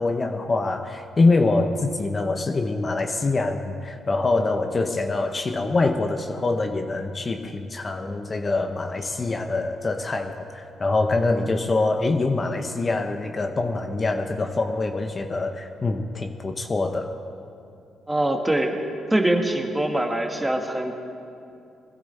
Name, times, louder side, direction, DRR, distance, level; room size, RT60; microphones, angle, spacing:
voice 1, 0.0-17.1, left 3 dB, 35° left, 6 dB, 0.8 m, -24 dB
voice 2, 18.1-18.8 19.1-20.9, right 1 dB, 10° right, 4 dB, 1.5 m, -23 dB
21.0 x 12.0 x 4.2 m, 2.6 s
cardioid pair, 85°, 0 cm